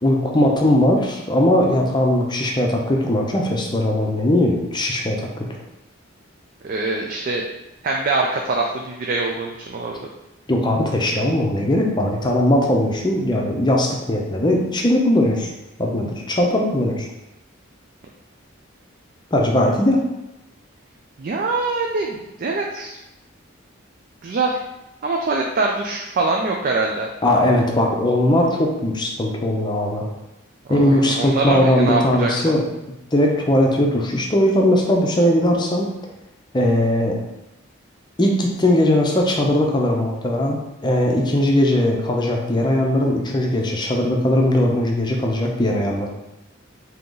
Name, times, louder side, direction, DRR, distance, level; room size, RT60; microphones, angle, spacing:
voice 1, 0.0-5.3 10.5-15.5 15.8-17.1 19.3-20.0 27.2-30.1 30.7-32.6 33.1-35.9 36.5-37.2 38.2-46.1, left 1 dB, 20° left, 0 dB, 0.6 m, -19 dB
voice 2, 6.6-7.4 7.8-10.1 21.2-23.0 24.2-24.6 25.0-27.1 30.7-32.5, right 3 dB, 45° right, 0 dB, 0.4 m, -23 dB
3.7 x 2.8 x 3.8 m, 0.93 s
head